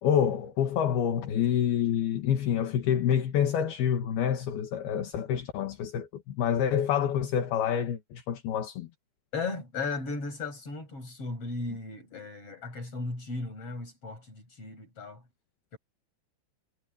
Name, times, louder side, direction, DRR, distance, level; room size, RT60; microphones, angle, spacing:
voice 1, 0.0-8.9, left 9 dB, 70° left, 3.6 m, -27 dB
voice 2, 9.3-15.2 15.7-15.8, left 3 dB, 35° left, 8.7 m, -36 dB
omnidirectional pair, 4.9 m